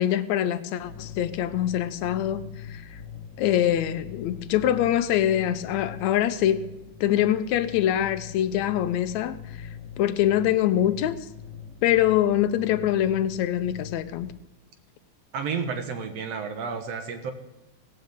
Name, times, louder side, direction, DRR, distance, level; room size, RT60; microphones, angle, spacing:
voice 1, 0.0-3.0 3.4-6.7 7.0-9.7 10.0-11.2 11.8-14.3, left 11 dB, 75° left, 1.8 m, -24 dB
sound 1, 0.8-14.3, left 7 dB, 35° left, 2.6 m, -42 dB
voice 2, 15.3-17.3, right 5 dB, 60° right, 2.4 m, -31 dB
17.5 x 17.0 x 3.7 m
omnidirectional pair, 3.6 m